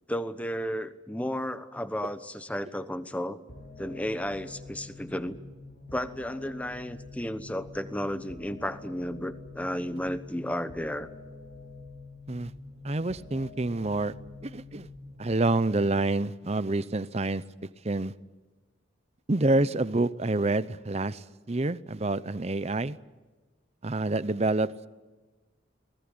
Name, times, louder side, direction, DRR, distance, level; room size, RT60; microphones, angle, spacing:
voice 1, 0.1-3.4 3.8-5.4 5.9-11.1, equal, 5° left, 12 dB, 1.0 m, -33 dB
sound 1, 3.5-15.5, left 3 dB, 60° left, 5.2 m, -47 dB
voice 2, 12.8-14.1 14.4-14.9 15.2-17.4 17.8-18.1 19.3-23.0 23.8-24.7, right 2 dB, 35° right, 16 dB, 0.7 m, -27 dB
22.5 x 20.0 x 9.9 m, 1.3 s
head